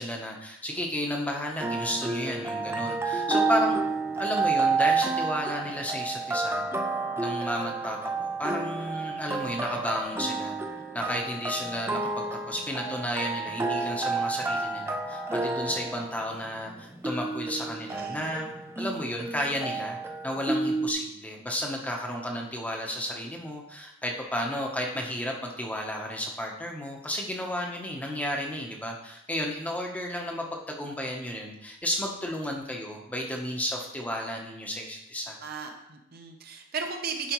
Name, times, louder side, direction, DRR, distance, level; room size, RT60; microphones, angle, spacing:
voice 1, 0.0-3.8 4.2-6.6 7.1-10.6 10.9-18.5 18.8-20.0 20.2-35.4, equal, 5° left, 0 dB, 0.8 m, -32 dB
sound 1, 1.6-20.9, right 3 dB, 10° right, 0.4 m, -30 dB
voice 2, 17.9-18.5 35.4-37.3, right 5 dB, 45° right, 4 dB, 0.8 m, -36 dB
10.5 x 5.0 x 3.1 m, 0.82 s
head